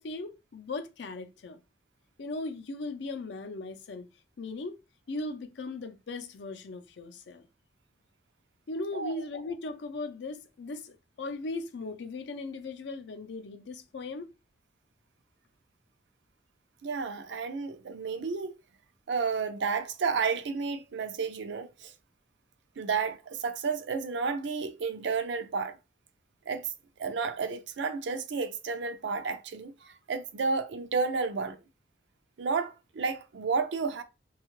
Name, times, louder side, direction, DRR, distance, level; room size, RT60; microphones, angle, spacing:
voice 1, 0.0-1.6 2.2-4.1 4.4-4.7 5.1-7.5 8.7-14.3, left 3 dB, 70° left, 0.5 m, -38 dB
voice 2, 16.8-18.5 19.1-21.9 22.8-25.8 26.5-26.7 27.0-31.6 32.4-34.0, right 5 dB, 75° right, 0.4 m, -31 dB
2.7 x 2.3 x 3.0 m
head